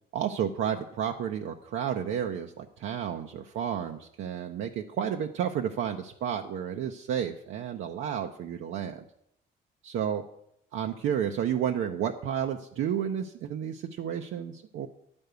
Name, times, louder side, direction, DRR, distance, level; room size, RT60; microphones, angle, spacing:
voice 1, 0.1-9.0 9.8-10.2 10.7-14.9, right 9 dB, 80° right, 3 dB, 0.7 m, -31 dB
10.5 x 5.4 x 8.1 m, 0.74 s
cardioid pair, 90°, 20 cm